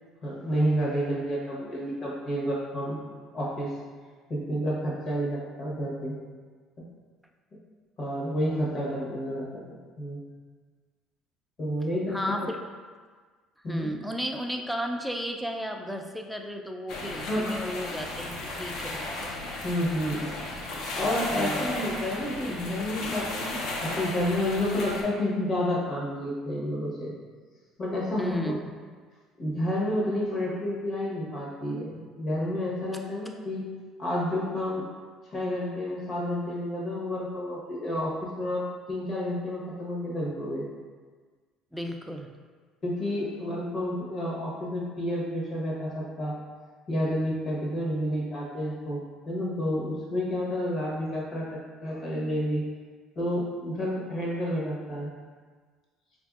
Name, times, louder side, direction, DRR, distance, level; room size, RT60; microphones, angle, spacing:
voice 1, 0.2-3.0 3.3-3.7 4.3-6.2 8.0-9.5 10.0-10.2 11.6-12.5 13.6-13.9 17.3-17.5 19.6-20.3 20.9-27.1 27.8-28.5 29.4-33.6 34.0-34.8 35.3-40.6 42.8-46.4 46.9-52.6 53.2-55.1, equal, 40° left, -5 dB, 1.0 m, -30 dB
voice 2, 12.1-12.6 13.7-19.0 21.3-21.8 28.2-28.7 41.7-42.3, equal, ahead, 3 dB, 0.3 m, -34 dB
sound 1, 16.9-25.0, left 2 dB, 70° left, 0.6 m, -35 dB
4.5 x 2.5 x 2.3 m, 1.5 s
cardioid pair, 120°, 0 cm